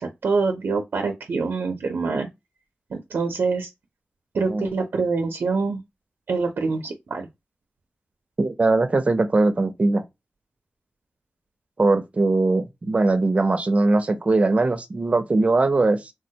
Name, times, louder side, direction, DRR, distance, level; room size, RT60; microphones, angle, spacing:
voice 1, 0.0-2.3 2.9-3.7 4.3-5.8 6.3-7.3, right 4 dB, 85° right, 0.5 m, -25 dB
voice 2, 8.4-10.0 11.8-16.1, right 2 dB, 40° right, 0.5 m, -20 dB
3.3 x 2.1 x 2.7 m
wide cardioid pair, 90°, 4 cm